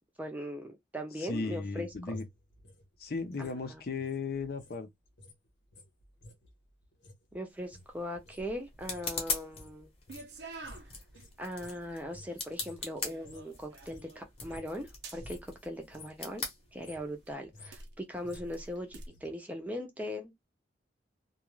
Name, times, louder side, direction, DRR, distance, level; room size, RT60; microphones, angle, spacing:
voice 1, 0.2-2.2 3.4-3.8 7.3-9.9 11.4-16.4 16.7-20.3, equal, 10° right, 0.6 m, -40 dB
voice 2, 1.2-2.2 3.0-4.9, left 4 dB, 55° left, 0.5 m, -36 dB
sound 1, 1.4-4.8 5.1-13.6 13.8-14.9 15.2-15.5 15.8-16.3 16.6-19.3 19.6-19.7, left 2 dB, 85° left, 0.8 m, -54 dB
sound 2, 7.5-17.3, left 4 dB, 30° left, 0.9 m, -42 dB
sound 3, 10.1-19.1, right 3 dB, 70° right, 0.7 m, -52 dB
2.4 x 2.3 x 3.0 m
head